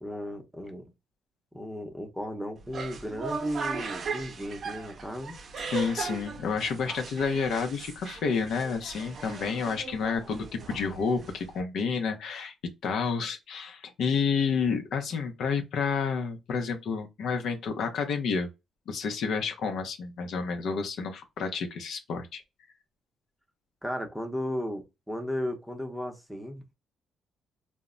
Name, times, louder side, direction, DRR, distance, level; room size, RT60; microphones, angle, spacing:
voice 1, 0.0-0.8 1.5-5.4 23.8-26.6, equal, 5° right, 0.7 m, -35 dB
sound 1, 2.6-11.6, right 5 dB, 50° right, 0.5 m, -38 dB
voice 2, 5.7-12.5 12.8-18.5 18.9-22.4, left 5 dB, 70° left, 0.5 m, -30 dB
2.1 x 2.0 x 3.6 m
cardioid pair, 90°, 0 cm